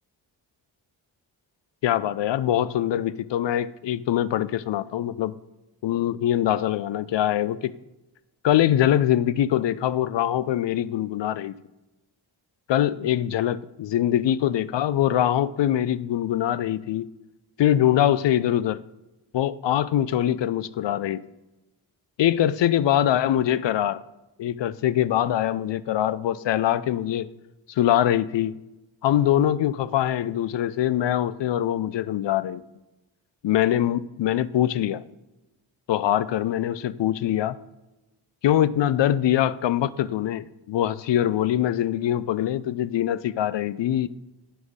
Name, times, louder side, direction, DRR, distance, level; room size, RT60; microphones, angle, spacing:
voice 1, 1.8-5.4 5.8-7.7 8.4-11.5 12.7-17.1 17.6-18.8 19.3-21.2 22.2-24.0 24.4-27.3 27.7-28.5 29.0-32.6 33.4-35.0 35.9-37.6 38.4-44.1, left 11 dB, 65° left, 0.5 m, -23 dB
9.0 x 6.2 x 3.6 m
cardioid pair, 45°, 48 cm